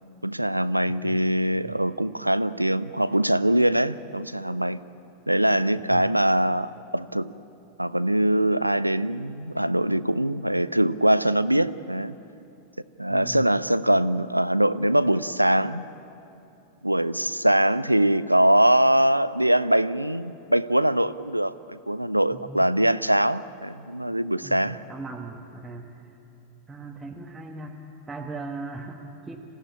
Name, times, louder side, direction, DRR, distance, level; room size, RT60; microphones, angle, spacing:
voice 1, 0.2-4.8 5.3-7.3 7.8-12.2 13.0-15.9 16.8-24.8, right 1 dB, 90° right, 16 dB, 0.5 m, -22 dB
voice 2, 13.1-13.5 22.3-22.7 24.4-25.9 26.7-27.8 28.1-29.4, right 3 dB, 10° right, -2 dB, 1.6 m, -38 dB
26.5 x 16.5 x 8.6 m, 2.8 s
figure-of-eight pair, 90°, 0 cm